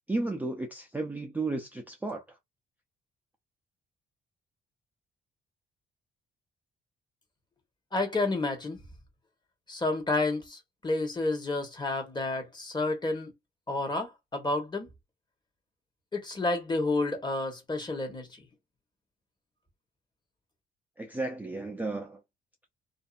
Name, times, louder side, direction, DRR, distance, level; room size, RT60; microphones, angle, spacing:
voice 1, 0.1-2.2 21.0-22.2, right 2 dB, 10° right, 0.5 m, -33 dB
voice 2, 7.9-8.8 9.7-13.3 13.7-14.9 16.1-18.3, left 2 dB, 20° left, 1.1 m, -30 dB
2.6 x 2.4 x 2.4 m
cardioid pair, 90°, 20 cm